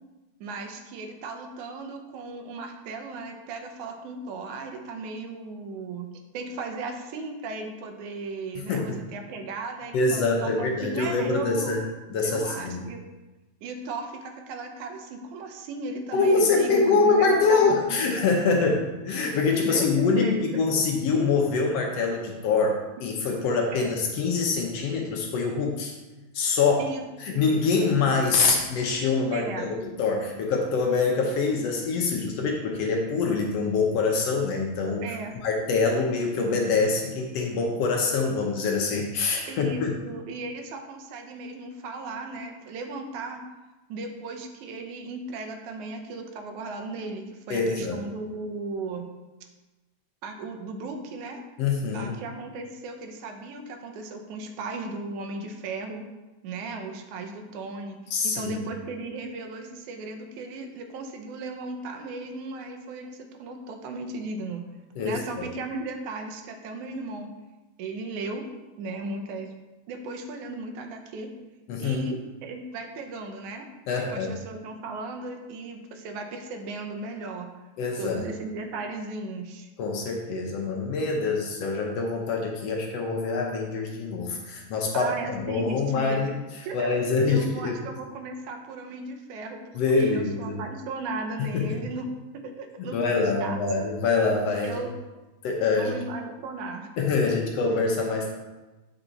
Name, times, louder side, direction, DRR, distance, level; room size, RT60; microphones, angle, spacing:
voice 1, 0.4-11.7 12.2-13.0 13.6-17.9 19.6-20.4 23.7-23.9 26.8-27.5 29.3-29.7 35.0-35.3 39.5-43.4 43.9-49.1 50.2-51.4 51.9-56.0 56.4-64.6 65.0-67.3 67.8-68.4 68.8-69.5 69.9-71.3 71.8-73.7 74.0-77.5 78.0-79.7 84.9-86.2 86.7-86.9 87.3-92.1 92.3-93.6 94.6-94.9 95.7-96.9, right 3 dB, 85° right, 4 dB, 2.2 m, -36 dB
voice 2, 9.9-11.8 12.1-12.8 16.1-25.9 26.3-26.8 27.2-35.1 35.4-39.9 47.5-48.0 51.6-52.1 58.1-58.5 65.0-65.2 71.7-72.1 73.9-74.4 77.8-78.2 79.8-87.8 89.7-90.6 91.4-91.8 92.9-94.8 95.4-95.9 97.0-98.3, left 4 dB, 70° left, 1 dB, 1.7 m, -25 dB
8.5 x 4.6 x 4.0 m, 1.1 s
omnidirectional pair, 3.3 m